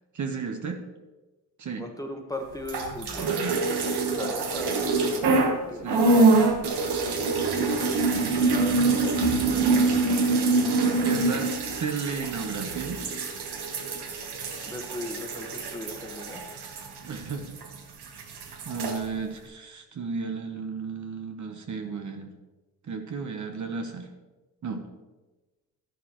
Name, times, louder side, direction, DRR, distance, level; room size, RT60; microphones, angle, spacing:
voice 1, 0.1-0.8 1.6-1.8 3.3-3.8 5.8-6.1 11.0-13.0 17.0-17.5 18.7-22.3 22.9-24.1 24.6-24.8, right 5 dB, 50° right, 5 dB, 1.1 m, -34 dB
voice 2, 1.8-3.3 3.8-5.9 8.5-9.3 14.7-16.4, left 1 dB, 10° left, 3 dB, 1.3 m, -38 dB
sound 1, 2.6-5.6 5.9-17.8 18.0-19.0, right 3 dB, 85° right, 1.4 m, -25 dB
11.5 x 10.5 x 3.1 m, 1.2 s
cardioid pair, 110°, 38 cm